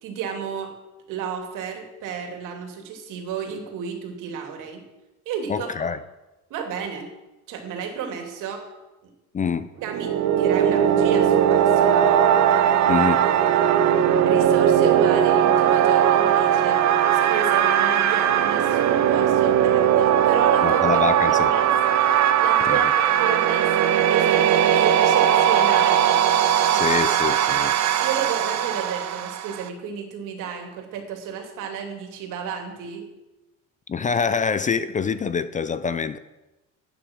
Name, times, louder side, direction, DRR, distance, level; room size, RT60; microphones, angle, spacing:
voice 1, 0.0-0.7 1.1-4.8 5.3-5.9 6.5-7.1 7.5-8.7 9.0-9.1 9.8-12.2 14.3-21.7 22.4-22.9 23.2-23.7 24.1-26.2 26.7-27.0 28.0-33.1, right 7 dB, 70° right, 2.9 m, -32 dB
voice 2, 5.5-6.0 9.3-9.7 12.9-13.2 20.6-21.5 22.7-22.8 26.7-27.7 33.9-36.2, left 6 dB, 25° left, 0.5 m, -25 dB
sound 1, 9.8-29.7, right 9 dB, 55° right, 1.0 m, -19 dB
13.5 x 9.3 x 6.2 m
cardioid pair, 130°, 32 cm